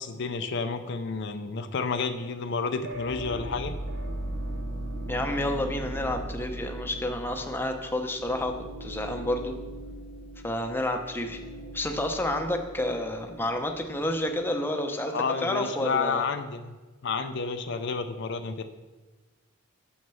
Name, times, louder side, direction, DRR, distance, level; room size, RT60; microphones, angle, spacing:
voice 1, 0.0-3.8 15.1-16.8 17.0-18.6, left 4 dB, 60° left, 8 dB, 0.5 m, -30 dB
sound 1, 2.8-14.7, right 1 dB, 60° right, 0.8 m, -38 dB
voice 2, 5.1-8.5 8.8-9.5 10.4-11.4 11.7-15.1 15.4-16.2, left 1 dB, 10° left, 4 dB, 0.7 m, -29 dB
6.4 x 5.7 x 6.9 m, 1.2 s
head